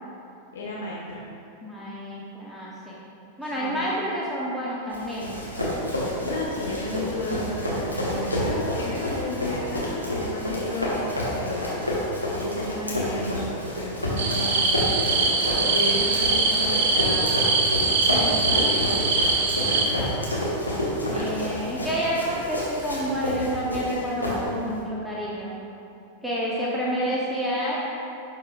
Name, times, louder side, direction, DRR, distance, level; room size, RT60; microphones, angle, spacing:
voice 1, 0.5-1.3 3.4-3.9 6.2-17.3 18.1-19.3 19.7-20.2, left 2 dB, 60° left, -5 dB, 0.9 m, -33 dB
voice 2, 1.6-3.0 3.4-5.4 21.1-25.5 26.2-27.8, equal, ahead, -7 dB, 1.0 m, -29 dB
Run, 4.9-24.8, equal, 85° left, 1.3 m, -29 dB
sound 1, 14.2-19.9, right 3 dB, 55° right, 0.7 m, -23 dB
11.0 x 4.9 x 2.5 m, 2.6 s
figure-of-eight pair, 90°, 0 cm